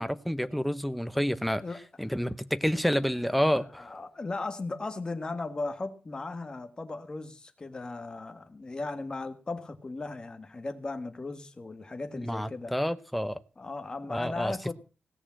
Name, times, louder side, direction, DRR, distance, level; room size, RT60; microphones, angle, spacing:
voice 1, 0.0-1.6 2.0-3.9 12.1-13.4 14.1-14.6, equal, ahead, 0.7 m, -29 dB
voice 2, 1.4-2.1 3.2-12.7 13.6-14.7, left 3 dB, 25° left, 1.6 m, -37 dB
17.5 x 6.7 x 7.6 m
wide cardioid pair, 175°, 3 cm